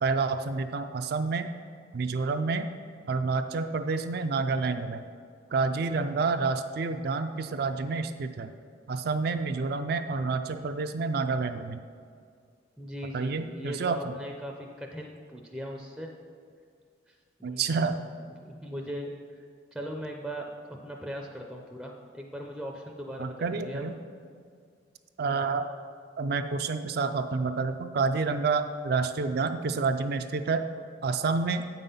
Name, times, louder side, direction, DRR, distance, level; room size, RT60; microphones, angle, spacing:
voice 1, 0.0-1.5 1.9-2.7 3.1-5.0 5.5-8.5 8.9-11.8 13.1-14.0 17.4-18.0 23.2-23.9 25.2-25.7 26.2-30.6 31.0-31.7, right 4 dB, 55° right, 8 dB, 0.4 m, -28 dB
voice 2, 12.8-16.1 17.1-17.2 17.4-18.1 18.4-19.4 19.7-23.9, equal, ahead, 0 dB, 0.5 m, -39 dB
8.1 x 5.5 x 5.6 m, 2.1 s
head